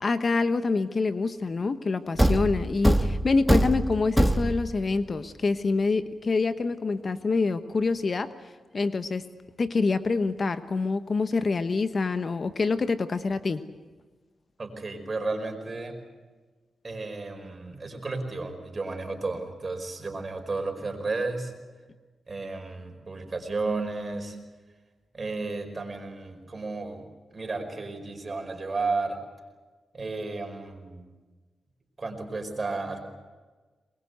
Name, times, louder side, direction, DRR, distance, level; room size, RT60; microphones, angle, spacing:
voice 1, 0.0-8.3 8.7-9.2 9.6-13.6, left 4 dB, 50° left, 11 dB, 1.1 m, -26 dB
Thump thud, 2.2-4.8, right 1 dB, 5° right, 1.5 m, -23 dB
voice 2, 14.6-16.0 16.8-21.5 22.3-24.4 25.1-29.2 29.9-31.0 32.0-33.0, right 3 dB, 40° right, 5 dB, 4.9 m, -33 dB
22.0 x 21.5 x 8.1 m, 1.3 s
cardioid pair, 55°, 0 cm